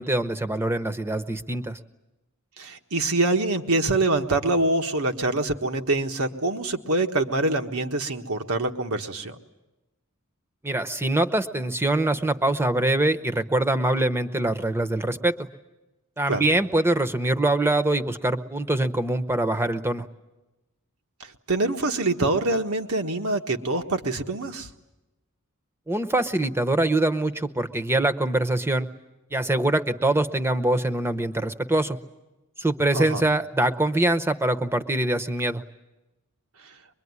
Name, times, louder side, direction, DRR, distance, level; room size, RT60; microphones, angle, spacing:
voice 1, 0.0-1.8 10.6-15.5 16.2-20.0 25.9-28.9 29.3-32.0 32.6-35.6, right 1 dB, 10° right, 11 dB, 0.9 m, -24 dB
voice 2, 2.6-9.4 16.3-16.4 21.5-24.7 32.9-33.2, right 2 dB, 85° right, 5 dB, 1.6 m, -25 dB
23.5 x 22.5 x 9.7 m, 1.0 s
head